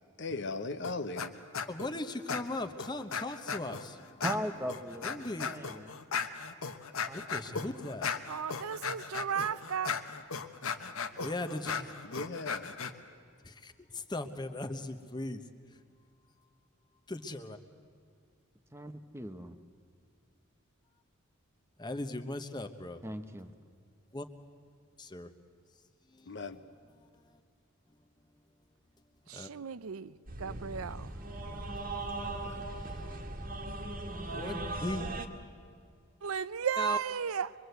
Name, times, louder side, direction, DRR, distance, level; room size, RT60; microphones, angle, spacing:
voice 1, 0.2-1.3 12.0-12.7 26.3-26.6 32.4-32.6, left 3 dB, 55° left, 1.0 m, -38 dB
sound 1, 0.8-1.3 1.5-1.9 2.3-3.8 4.2-12.9, left 5 dB, 75° left, 1.2 m, -37 dB
voice 2, 1.7-4.2 5.0-5.5 7.1-8.1 11.2-11.9 13.4-15.4 15.7-15.8 17.1-17.6 21.8-23.0 24.1-24.2 25.0-25.3 26.1-26.4 26.9-27.4 29.3-29.5 31.4-33.2 34.3-35.1 36.8-37.0, left 2 dB, 20° left, 1.1 m, -39 dB
voice 3, 4.2-6.0 7.1-7.2 18.7-19.6 23.0-23.5, equal, 10° right, 1.0 m, -39 dB
voice 4, 8.3-9.9 29.3-31.1 36.2-37.5, right 7 dB, 80° right, 0.6 m, -34 dB
sound 2, 30.3-35.3, right 2 dB, 40° right, 1.6 m, -39 dB
24.5 x 23.0 x 8.1 m
head